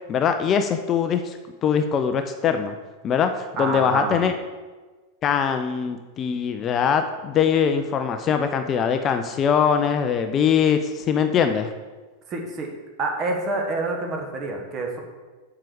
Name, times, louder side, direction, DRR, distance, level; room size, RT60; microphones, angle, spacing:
voice 1, 0.1-2.7 3.0-4.3 5.2-11.7, left 7 dB, 30° left, 7 dB, 0.5 m, -22 dB
voice 2, 3.6-4.3 12.3-12.7 13.0-15.0, right 3 dB, 30° right, 2 dB, 1.6 m, -27 dB
7.5 x 4.9 x 6.9 m, 1.3 s
figure-of-eight pair, 90°, 0 cm